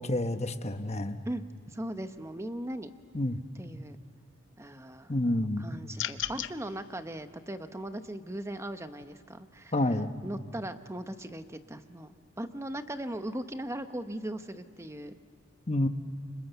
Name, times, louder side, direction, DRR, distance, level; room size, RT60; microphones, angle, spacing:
voice 1, 0.0-1.2 3.1-3.4 5.1-5.6 9.7-10.1 15.7-15.9, left 1 dB, 30° left, 8 dB, 1.1 m, -28 dB
voice 2, 1.3-2.9 3.6-4.0 4.6-5.1 5.6-9.7 10.2-15.2, right 1 dB, 15° right, 9 dB, 0.9 m, -38 dB
sound 1, 6.0-6.5, left 12 dB, 65° left, 0.7 m, -33 dB
29.5 x 26.0 x 6.9 m, 2.2 s
head